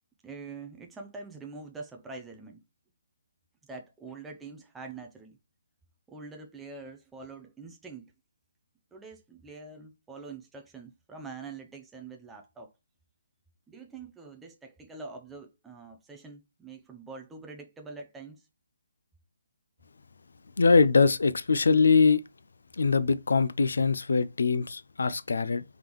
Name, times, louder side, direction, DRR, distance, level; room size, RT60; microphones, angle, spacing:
voice 1, 0.2-2.6 3.7-5.4 6.1-8.1 8.9-12.7 13.7-18.5, right 4 dB, 5° right, 0.4 m, -45 dB
voice 2, 20.6-22.2 22.8-25.6, left 4 dB, 80° left, 0.4 m, -22 dB
3.7 x 3.5 x 3.0 m
hypercardioid pair, 165°, 0 cm